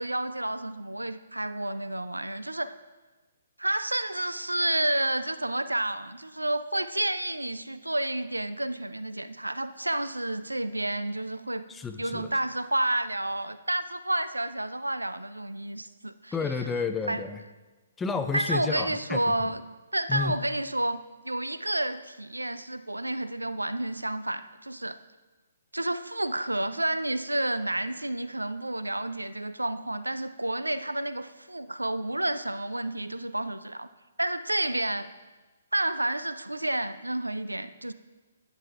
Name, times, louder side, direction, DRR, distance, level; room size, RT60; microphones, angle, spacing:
voice 1, 0.0-2.7 3.6-11.7 12.0-16.3 17.1-17.2 18.3-19.6 19.9-25.0 25.7-33.9 34.2-35.1 35.7-37.9, right 1 dB, 80° right, 13 dB, 0.4 m, -30 dB
voice 2, 11.7-12.3 16.3-17.4 18.0-19.3 20.1-20.4, left 5 dB, 10° left, 7 dB, 0.5 m, -31 dB
10.5 x 10.0 x 2.3 m, 1.2 s
figure-of-eight pair, 130°, 0 cm